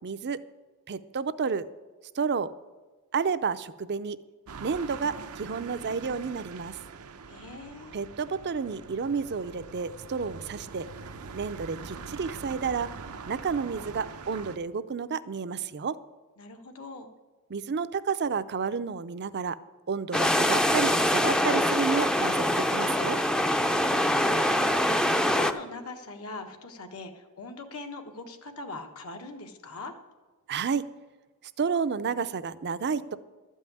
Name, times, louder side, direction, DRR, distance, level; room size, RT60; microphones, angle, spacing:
voice 1, 0.0-0.4 0.9-1.6 2.2-2.5 3.1-4.2 4.6-6.8 7.9-10.8 11.3-12.9 13.3-15.9 17.5-19.6 19.9-23.2 30.5-30.8 31.6-33.2, right 5 dB, 50° right, 14 dB, 0.5 m, -30 dB
sound 1, 4.5-14.6, right 4 dB, 90° right, 0.7 m, -43 dB
voice 2, 7.3-7.9 16.4-17.1 23.7-29.9, left 3 dB, 80° left, 4 dB, 1.4 m, -41 dB
sound 2, 20.1-25.5, left 1 dB, 5° left, 0.4 m, -24 dB
12.5 x 5.5 x 9.2 m, 1.3 s
head